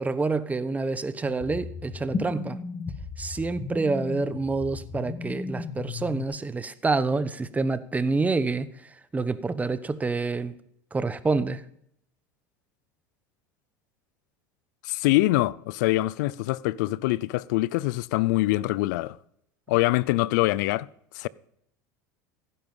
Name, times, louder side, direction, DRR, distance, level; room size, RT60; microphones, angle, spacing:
voice 1, 0.0-2.6 3.2-8.7 9.1-10.5 10.9-11.6, right 3 dB, 15° right, 1.0 m, -27 dB
sound 1, 1.2-6.2, left 4 dB, 25° left, 2.2 m, -35 dB
voice 2, 14.8-19.2 19.7-20.9 21.1-21.3, left 18 dB, 70° left, 0.5 m, -24 dB
15.5 x 10.0 x 5.6 m
hypercardioid pair, 95°, 10 cm